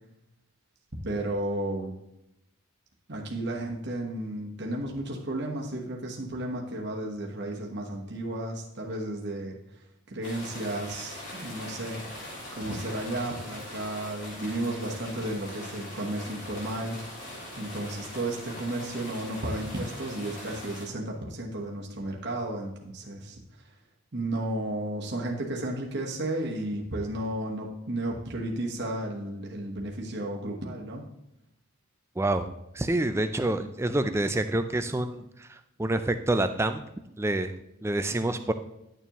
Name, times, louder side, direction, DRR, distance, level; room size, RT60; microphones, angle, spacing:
voice 1, 1.0-1.9 3.1-9.6 10.1-12.0 12.5-17.0 17.6-23.4 24.1-31.0, right 1 dB, 50° right, -1 dB, 1.1 m, -33 dB
sound 1, 10.2-20.8, left 1 dB, 55° left, 3.2 m, -41 dB
voice 2, 32.2-32.5 32.7-36.8 37.2-37.5 37.8-38.5, right 1 dB, 10° right, 9 dB, 0.3 m, -27 dB
10.5 x 7.0 x 3.0 m, 0.85 s
head